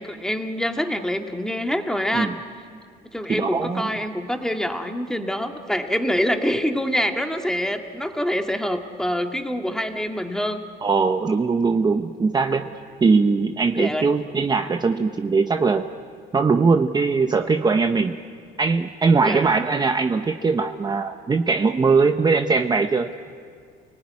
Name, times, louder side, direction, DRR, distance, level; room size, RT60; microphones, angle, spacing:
voice 1, 0.0-2.3 3.1-10.6 13.7-14.1 19.2-19.6, equal, 5° left, 4 dB, 2.0 m, -25 dB
voice 2, 3.3-3.9 10.8-12.7 13.0-15.9 16.3-18.2 18.6-23.1, right 4 dB, 25° right, 6 dB, 0.9 m, -20 dB
29.0 x 19.5 x 9.7 m, 2.2 s
cardioid pair, 110°, 17 cm